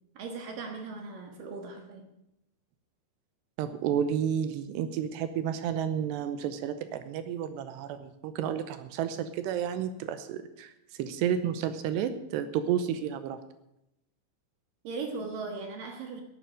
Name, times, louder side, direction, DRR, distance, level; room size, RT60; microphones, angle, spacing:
voice 1, 0.2-2.1 14.8-16.2, right 4 dB, 60° right, 3 dB, 2.7 m, -38 dB
voice 2, 3.6-10.7 11.0-13.4, right 9 dB, 80° right, 10 dB, 2.7 m, -31 dB
10.5 x 8.6 x 8.9 m, 0.84 s
omnidirectional pair, 5.3 m